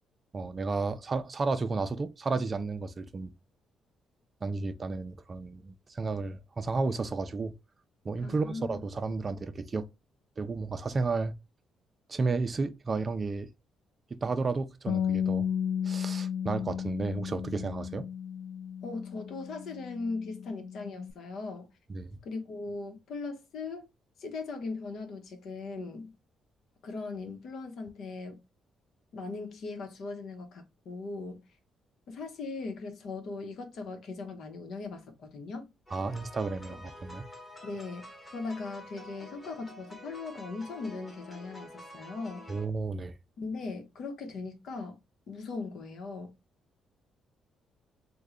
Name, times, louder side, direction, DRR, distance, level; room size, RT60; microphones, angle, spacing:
voice 1, 0.3-3.3 4.4-7.5 8.0-9.9 10.4-11.3 12.1-13.5 14.2-15.5 15.8-18.1 21.9-22.2 35.9-37.2 42.5-43.1, right 3 dB, 35° right, 0.4 m, -32 dB
voice 2, 8.2-8.8 18.8-21.7 22.2-23.9 24.2-26.1 26.8-28.4 29.1-31.5 32.1-35.7 36.7-36.8 37.6-42.5 43.4-45.0 45.3-46.4, left 3 dB, 65° left, 0.9 m, -39 dB
Bass guitar, 14.9-21.1, left 8 dB, 85° left, 0.4 m, -34 dB
sound 1, 35.9-42.7, left 1 dB, 20° left, 1.1 m, -48 dB
3.1 x 2.2 x 3.6 m
cardioid pair, 90°, 0 cm